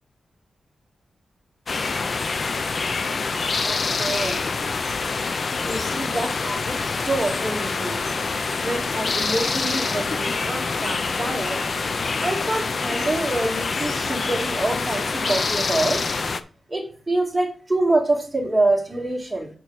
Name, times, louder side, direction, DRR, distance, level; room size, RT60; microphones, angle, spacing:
sound 1, 1.7-16.4, left 4 dB, 45° left, 0.6 m, -26 dB
voice 1, 3.3-4.6 5.6-8.0 8.6-11.6 12.2-16.1 16.7-19.5, right 2 dB, 10° right, -1 dB, 2.3 m, -26 dB
7.0 x 4.6 x 6.4 m, 0.39 s
wide cardioid pair, 145°, 0 cm